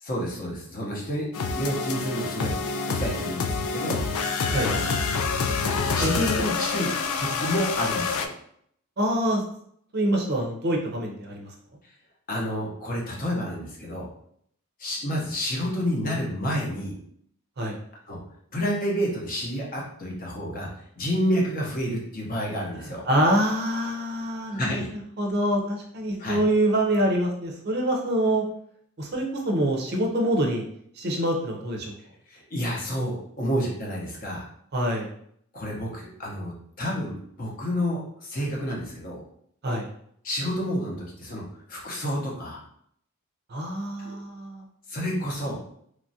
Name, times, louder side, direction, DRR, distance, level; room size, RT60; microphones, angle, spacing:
voice 1, 0.0-2.6 2.9-4.0 4.6-4.8 5.1-5.2 5.9-6.9 7.2-8.3 12.3-14.1 14.8-16.9 18.1-18.2 18.5-20.7 21.0-23.0 24.5-24.9 26.2-26.4 32.3-34.5 35.5-39.2 40.2-41.4 41.7-42.6 44.0-44.1 44.9-45.6, equal, 40° left, -2 dB, 0.7 m, -29 dB
sound 1, 1.3-8.3, left 4 dB, 70° left, 0.3 m, -27 dB
voice 2, 6.0-6.4 9.0-9.5 9.9-11.5 17.6-17.8 22.8-24.8 25.2-28.4 29.0-30.6 31.0-31.9 34.7-35.1 39.6-39.9 43.5-44.7, right 1 dB, 45° right, 1 dB, 0.5 m, -25 dB
3.1 x 2.3 x 2.6 m, 0.67 s
head